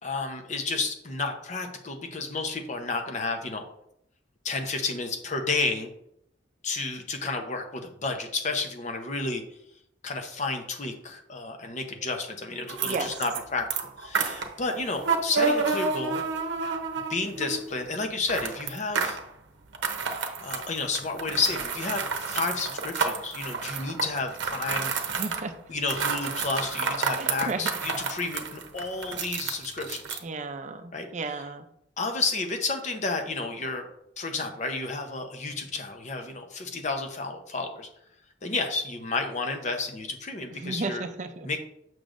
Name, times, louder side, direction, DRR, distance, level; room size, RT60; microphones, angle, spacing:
voice 1, 0.0-3.6 4.4-5.9 6.6-9.4 10.0-13.7 14.0-16.3 17.1-19.2 20.1-25.4 25.7-30.2 30.9-31.4 32.0-33.8 34.2-37.9 38.4-41.0 41.4-41.6, left 3 dB, 40° left, 5 dB, 0.8 m, -31 dB
sound 1, 12.7-13.4 13.7-17.7 18.3-19.3 19.7-25.5 25.8-30.2, right 5 dB, 80° right, 0.7 m, -30 dB
voice 2, 25.2-25.5 27.2-27.7 30.2-31.6 40.6-41.5, right 3 dB, 40° right, 7 dB, 0.5 m, -33 dB
6.8 x 6.2 x 2.5 m, 0.76 s
head